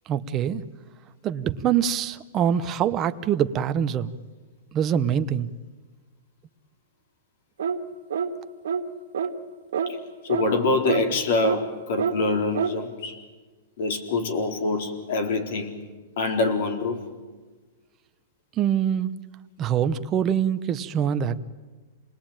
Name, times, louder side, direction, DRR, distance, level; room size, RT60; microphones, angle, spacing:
voice 1, 0.1-0.6 1.2-4.1 4.7-5.5 18.6-19.1 19.6-21.4, right 9 dB, 25° right, 11 dB, 0.9 m, -24 dB
sound 1, 7.6-7.8 8.1-8.3 8.6-8.8 9.1-9.3 9.7-9.9 10.3-10.5 10.8-11.0 11.4-11.6 12.0-12.2 12.5-12.7, right 7 dB, 85° right, 1.9 m, -26 dB
voice 2, 10.2-13.2 13.8-15.8 16.2-17.0, left 3 dB, 60° left, 5 dB, 4.2 m, -25 dB
28.0 x 20.5 x 9.0 m, 1.3 s
hypercardioid pair, 160°, 0 cm